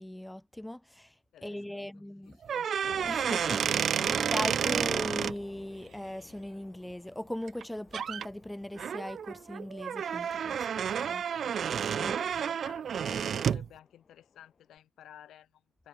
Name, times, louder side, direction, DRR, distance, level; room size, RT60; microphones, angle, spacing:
voice 1, 0.0-1.2 1.4-2.4 3.0-11.2 12.0-12.1, left 1 dB, 5° left, 0.4 m, -39 dB
voice 2, 1.3-2.7 4.0-4.2 12.0-15.9, left 11 dB, 80° left, 6.5 m, -54 dB
sound 1, 2.4-5.3 7.5-7.6 7.9-8.3 8.8-13.7, right 8 dB, 65° right, 0.4 m, -30 dB
sound 2, 2.8-14.8, left 5 dB, 50° left, 2.6 m, -53 dB
supercardioid pair, 60°, 0 cm